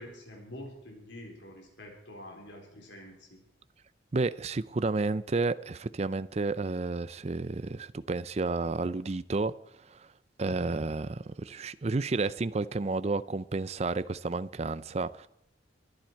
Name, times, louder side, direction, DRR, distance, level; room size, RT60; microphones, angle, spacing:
voice 1, 0.0-3.4, left 1 dB, 80° left, 3.9 m, -46 dB
voice 2, 4.1-9.5 9.9-10.0 10.4-15.3, right 3 dB, 35° right, 0.5 m, -31 dB
23.0 x 10.5 x 4.6 m
head